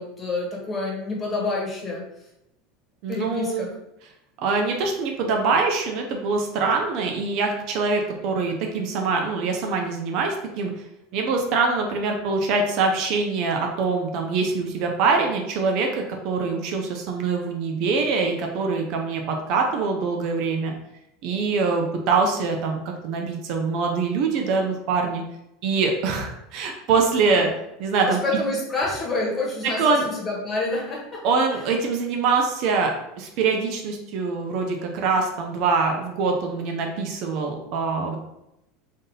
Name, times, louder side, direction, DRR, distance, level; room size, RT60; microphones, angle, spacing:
voice 1, 0.0-2.0 3.1-3.7 28.1-31.2, left 2 dB, 20° left, -3 dB, 1.3 m, -28 dB
voice 2, 3.0-3.7 4.4-10.7 11.1-20.7 21.2-25.2 25.6-27.5 27.8-28.2 29.8-30.0 31.2-38.2, right 4 dB, 55° right, 2 dB, 0.6 m, -24 dB
3.6 x 2.7 x 3.8 m, 0.85 s
supercardioid pair, 145°, 0 cm